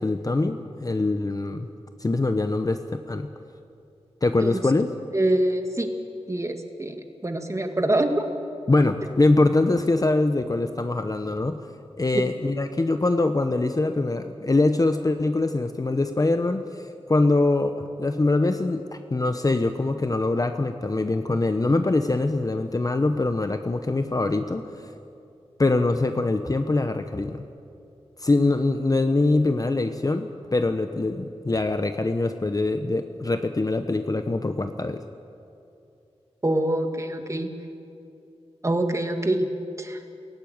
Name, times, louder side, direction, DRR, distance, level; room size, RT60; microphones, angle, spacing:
voice 1, 0.0-1.7 2.0-3.3 4.2-4.9 8.7-11.7 12.0-24.9 25.6-27.4 28.2-35.0, left 2 dB, 35° left, 8 dB, 0.8 m, -23 dB
voice 2, 5.1-5.9 6.3-6.9 7.2-8.3 12.1-12.2 36.4-37.5 38.6-39.5 39.8-40.0, right 1 dB, 25° right, 5 dB, 2.0 m, -24 dB
17.0 x 16.0 x 9.4 m, 2.7 s
wide cardioid pair, 65°, 11 cm